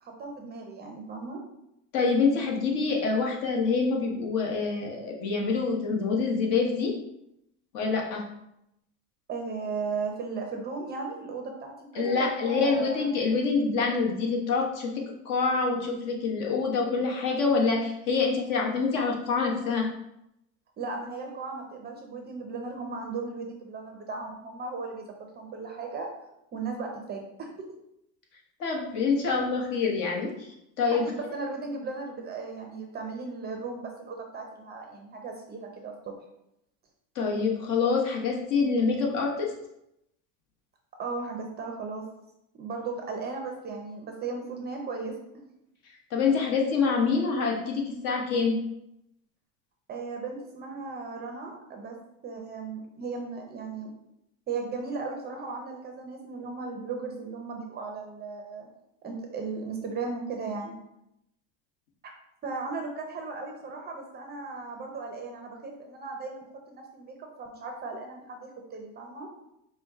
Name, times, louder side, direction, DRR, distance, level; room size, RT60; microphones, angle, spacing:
voice 1, 0.0-1.4 9.3-13.1 20.8-26.1 26.5-27.5 30.9-35.9 41.0-42.1 42.5-45.2 49.9-51.9 52.2-53.9 54.5-58.7 59.0-60.8 62.0-62.1 62.4-69.3, right 4 dB, 25° right, 2 dB, 0.6 m, -36 dB
voice 2, 1.9-6.9 7.7-8.2 11.9-19.9 28.6-30.5 30.8-31.0 37.1-39.5 46.1-48.6, left 4 dB, 50° left, 0 dB, 1.1 m, -26 dB
5.1 x 2.2 x 3.5 m, 0.82 s
supercardioid pair, 120°, 40 cm